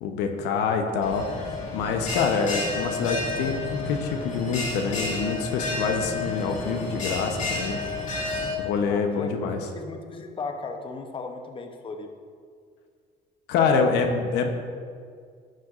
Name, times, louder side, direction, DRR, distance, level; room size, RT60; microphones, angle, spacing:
voice 1, 0.0-1.3 1.7-7.8 8.6-9.6 13.5-14.5, left 5 dB, 90° left, 4 dB, 0.9 m, -26 dB
Bell, 1.0-8.5, left 2 dB, 50° left, 2.0 m, -31 dB
voice 2, 8.9-12.1, left 3 dB, 30° left, 4 dB, 0.8 m, -36 dB
11.5 x 7.7 x 2.5 m, 2.1 s
cardioid pair, 110°, 17 cm